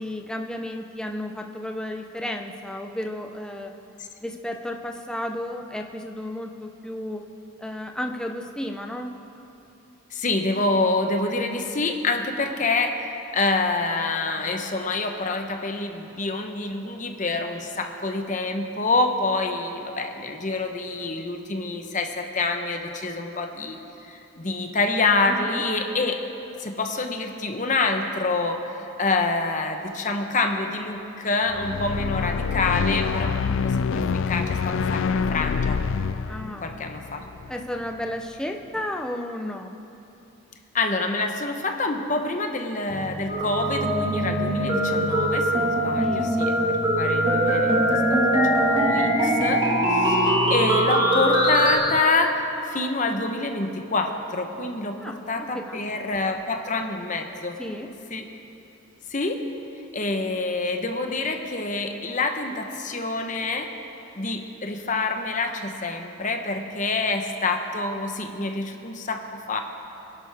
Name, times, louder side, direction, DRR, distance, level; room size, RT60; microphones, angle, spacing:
voice 1, 0.0-3.7 4.2-7.3 7.6-9.2 25.3-25.6 31.5-31.8 36.3-36.7 37.5-39.8 46.0-46.3 55.0-56.2 57.6-57.9, left 1 dB, 5° left, 3 dB, 0.6 m, -33 dB
voice 2, 10.1-26.2 26.6-35.8 36.6-37.3 40.7-49.6 49.9-57.6 58.1-58.3 59.1-59.5 59.9-63.7 64.1-69.6, left 3 dB, 35° left, 5 dB, 0.9 m, -27 dB
sound 1, 31.5-37.8, left 5 dB, 70° left, 0.3 m, -26 dB
sound 2, 42.9-52.0, right 2 dB, 50° right, 0.4 m, -35 dB
sound 3, 43.3-51.7, right 1 dB, 25° right, 1.7 m, -22 dB
23.0 x 11.0 x 3.5 m, 2.9 s
head